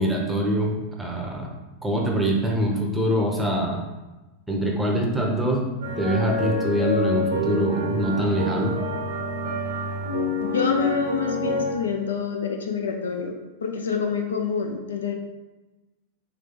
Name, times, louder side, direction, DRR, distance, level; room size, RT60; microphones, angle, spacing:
voice 1, 0.0-1.5 1.8-3.8 4.5-5.7 6.0-8.8, equal, 5° right, -1 dB, 0.7 m, -24 dB
sound 1, 5.8-11.7, left 1 dB, 60° right, 0.8 m, -27 dB
voice 2, 10.4-13.4 13.6-15.1, left 5 dB, 70° left, 3 dB, 0.4 m, -27 dB
3.1 x 2.8 x 3.5 m, 1.1 s
figure-of-eight pair, 90°, 0 cm